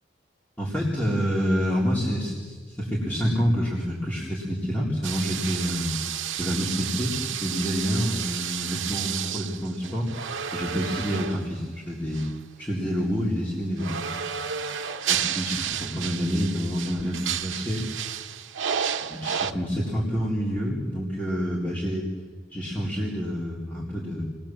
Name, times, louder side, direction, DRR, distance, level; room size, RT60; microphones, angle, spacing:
voice 1, 0.6-6.0 6.4-10.1 10.5-12.3 12.6-14.1 15.1-17.8 19.0-22.0 22.5-24.2, equal, 10° left, -6 dB, 3.8 m, -28 dB
sound 1, 5.0-11.6 12.1-12.3 13.8-19.5, right 8 dB, 80° right, 1.0 m, -31 dB
29.5 x 20.0 x 7.5 m, 1.5 s
head